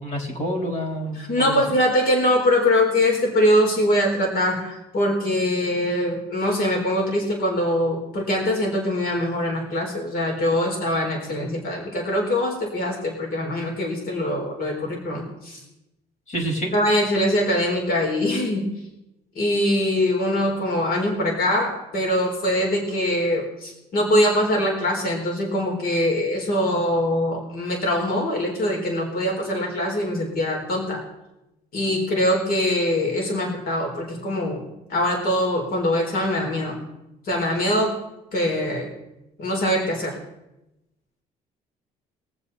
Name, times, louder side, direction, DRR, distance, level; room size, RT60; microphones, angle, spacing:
voice 1, 0.0-1.6 16.3-16.7, right 1 dB, 45° left, 1 dB, 4.0 m, -28 dB
voice 2, 1.2-15.6 16.7-18.7 19.4-31.0 31.7-36.8 37.3-37.9 38.3-38.9 39.4-40.1, left 1 dB, 60° left, 0 dB, 4.1 m, -23 dB
23.0 x 7.9 x 4.2 m, 0.93 s
cardioid pair, 110°, 17 cm